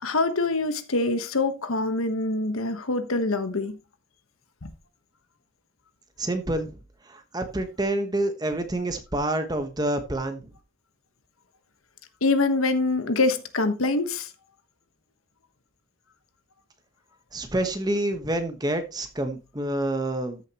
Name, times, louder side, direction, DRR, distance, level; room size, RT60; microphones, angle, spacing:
voice 1, 0.0-3.8 4.6-4.7 12.2-14.3, left 3 dB, 85° left, 1.2 m, -25 dB
voice 2, 6.2-6.8 7.1-10.5 17.3-20.4, right 1 dB, 20° right, 1.2 m, -28 dB
13.5 x 6.5 x 3.0 m
head